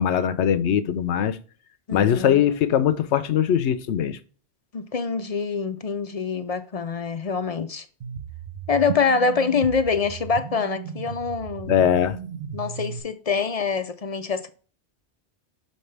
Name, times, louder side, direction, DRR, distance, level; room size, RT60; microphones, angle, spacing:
voice 1, 0.0-1.4 1.9-4.2 11.7-12.2, left 9 dB, 85° left, 1.0 m, -21 dB
voice 2, 1.9-2.4 4.7-7.9 8.7-11.7 12.5-14.5, left 5 dB, 50° left, 0.5 m, -25 dB
sound 1, 8.0-13.0, right 7 dB, 70° right, 0.9 m, -35 dB
6.5 x 5.4 x 3.3 m
omnidirectional pair, 1.1 m